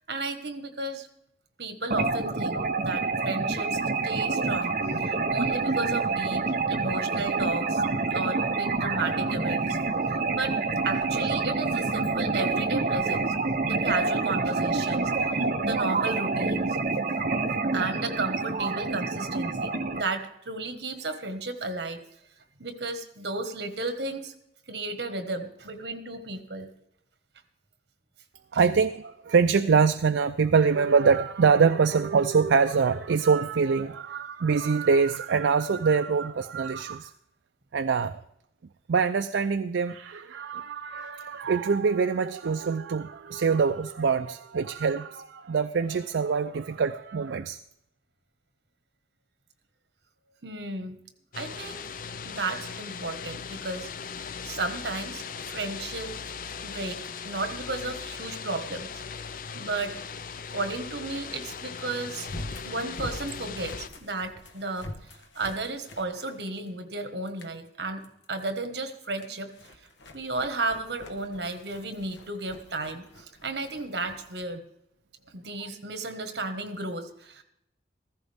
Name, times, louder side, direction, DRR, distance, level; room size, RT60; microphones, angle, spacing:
voice 1, 0.1-1.1 1.6-9.8 10.3-10.6 10.8-13.3 13.7-15.1 15.6-16.8 17.7-22.0 22.6-24.3 24.7-26.7 50.4-51.0 51.3-51.8 52.2-53.9 54.4-56.2 56.6-59.0 59.5-60.0 60.5-62.3 62.6-64.9 65.3-68.0 68.3-69.5 70.1-74.6 75.3-77.4, right 3 dB, 65° right, 8 dB, 1.5 m, -33 dB
sound 1, 1.9-20.0, right 3 dB, 45° right, 0.9 m, -27 dB
voice 2, 28.5-37.1 37.7-38.2 38.9-47.6, right 5 dB, 85° right, 9 dB, 0.4 m, -24 dB
sound 2, 51.3-63.9, left 6 dB, 50° left, 0.5 m, -39 dB
sound 3, 62.2-66.9 67.3-67.6 68.0-68.6 69.0-74.4, left 1 dB, 85° left, 1.3 m, -45 dB
15.0 x 15.0 x 3.5 m, 0.76 s
head